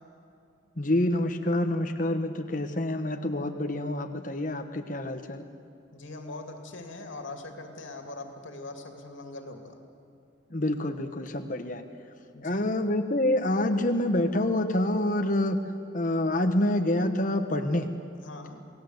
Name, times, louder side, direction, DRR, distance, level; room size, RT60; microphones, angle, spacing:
voice 1, 0.8-5.4 10.5-11.8 12.4-15.7 15.9-17.9, left 1 dB, 40° left, 6 dB, 1.2 m, -27 dB
voice 2, 5.9-9.8 12.3-12.8 18.2-18.6, left 2 dB, 75° left, 4 dB, 2.4 m, -41 dB
28.0 x 18.0 x 8.0 m, 2.5 s
head